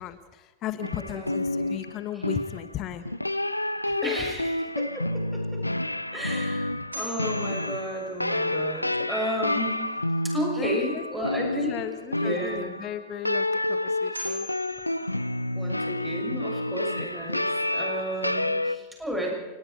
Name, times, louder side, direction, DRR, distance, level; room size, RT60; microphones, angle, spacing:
voice 1, 0.0-3.0 4.0-4.2 10.6-11.0 11.5-14.5, left 11 dB, 35° left, 11 dB, 1.4 m, -35 dB
sound 1, 0.8-18.8, left 1 dB, 85° left, 0.6 m, -29 dB
voice 2, 1.1-1.8 2.1-2.2 3.9-5.6 6.1-9.7 10.2-11.8 12.1-12.8 15.5-19.3, equal, 5° right, 0 dB, 6.5 m, -33 dB
bell toy cash register ding, 6.9-8.8 13.7-13.8 14.1-16.0, left 1 dB, 75° right, 6.0 m, -42 dB
29.5 x 19.5 x 4.6 m, 1.2 s
figure-of-eight pair, 90°, 0 cm